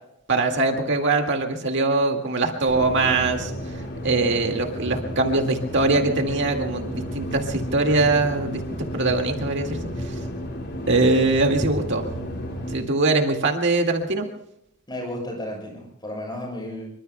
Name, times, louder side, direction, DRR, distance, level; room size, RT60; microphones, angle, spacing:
voice 1, 0.3-8.6 8.9-10.2 10.9-12.0 12.7-14.3, right 3 dB, 55° right, 3 dB, 2.0 m, -22 dB
sound 1, 2.7-12.8, equal, 50° left, 4.7 m, -32 dB
voice 2, 14.9-16.9, left 1 dB, 20° left, 0 dB, 7.6 m, -33 dB
26.5 x 24.0 x 2.2 m, 0.78 s
head